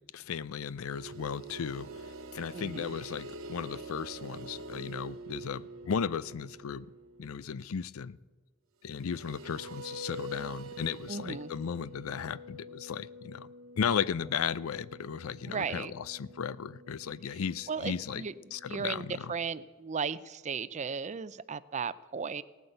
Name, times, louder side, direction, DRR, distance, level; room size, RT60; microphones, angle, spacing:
voice 1, 0.1-1.9 2.3-6.9 7.2-8.2 8.8-13.5 13.8-18.2 18.5-19.3, left 7 dB, 85° left, 0.5 m, -35 dB
sound 1, 0.9-7.6 8.9-19.2, right 1 dB, 75° right, 1.0 m, -47 dB
voice 2, 2.5-2.9 11.1-11.5 15.5-15.9 17.7-18.3 18.7-22.4, right 5 dB, 35° right, 0.5 m, -36 dB
17.5 x 9.5 x 7.9 m
head